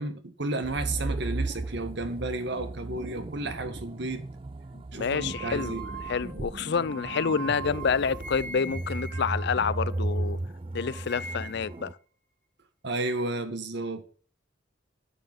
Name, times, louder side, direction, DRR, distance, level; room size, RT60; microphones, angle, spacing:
voice 1, 0.0-4.2 4.9-5.8 12.8-14.0, right 2 dB, 65° right, 1.8 m, -32 dB
sound 1, 0.6-11.9, right 2 dB, 30° right, 0.5 m, -35 dB
voice 2, 4.7-5.8 6.1-10.4 10.7-12.0, left 6 dB, 65° left, 0.5 m, -28 dB
sound 2, 5.1-10.4 10.7-11.8, right 4 dB, 45° right, 2.1 m, -42 dB
11.5 x 8.7 x 6.3 m
head